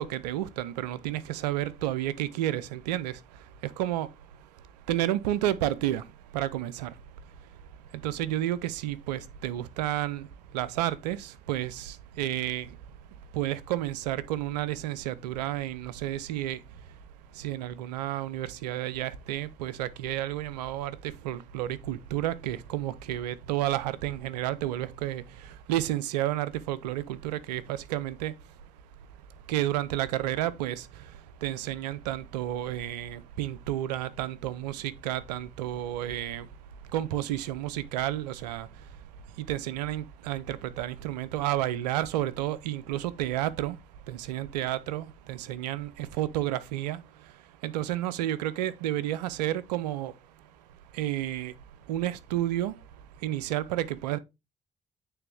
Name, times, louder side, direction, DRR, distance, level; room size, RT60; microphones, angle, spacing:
voice 1, 0.0-3.1 3.8-4.1 4.9-6.0 6.3-6.9 8.0-10.3 10.5-12.7 13.3-16.6 17.4-21.0 21.2-25.2 25.7-28.3 29.5-30.8 31.4-36.5 36.9-38.7 39.5-43.8 44.1-47.0 47.6-50.1 51.0-51.5 51.9-52.7 53.2-54.2, right 13 dB, 80° right, 0.5 m, -31 dB
8.8 x 3.4 x 3.5 m
figure-of-eight pair, 40°, 21 cm